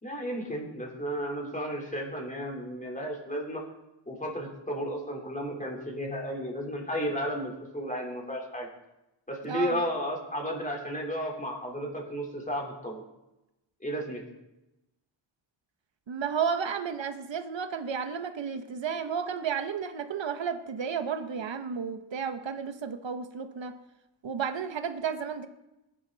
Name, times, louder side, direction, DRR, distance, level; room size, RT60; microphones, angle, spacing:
voice 1, 0.0-3.6 4.1-8.7 9.3-13.0 13.8-14.2, equal, 15° left, -1 dB, 3.8 m, -33 dB
voice 2, 9.4-9.8 16.1-23.7 24.2-25.5, right 6 dB, 70° right, 8 dB, 1.2 m, -32 dB
20.5 x 11.0 x 4.1 m, 0.94 s
wide cardioid pair, 130°, 47 cm